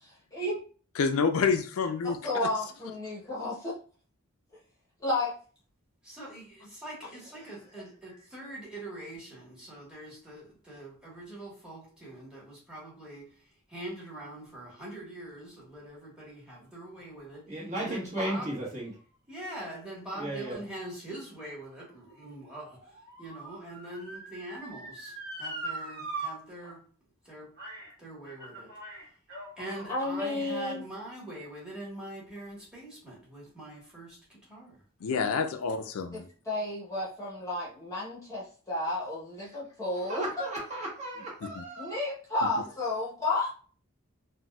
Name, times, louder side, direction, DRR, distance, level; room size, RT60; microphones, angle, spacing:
voice 1, 1.0-2.2 35.0-36.2 41.4-41.6, left 5 dB, 90° left, 6 dB, 0.4 m, -28 dB
voice 2, 2.0-3.7 5.0-5.3 29.9-30.8 36.1-40.2 41.8-43.5, left 2 dB, 15° left, -7 dB, 0.8 m, -32 dB
voice 3, 6.0-18.5 19.3-26.8 27.2-27.5 28.0-28.7 29.6-34.8, right 1 dB, 5° right, -5 dB, 1.4 m, -43 dB
voice 4, 17.5-18.9 20.2-20.6 40.1-42.0, right 1 dB, 35° right, -4 dB, 1.2 m, -35 dB
Motor vehicle (road) / Siren, 21.1-26.3 26.6-26.7 27.6-27.9 28.2-29.9 30.6-30.7, right 3 dB, 50° right, 1.3 m, -41 dB
4.0 x 2.2 x 2.3 m, 0.41 s
head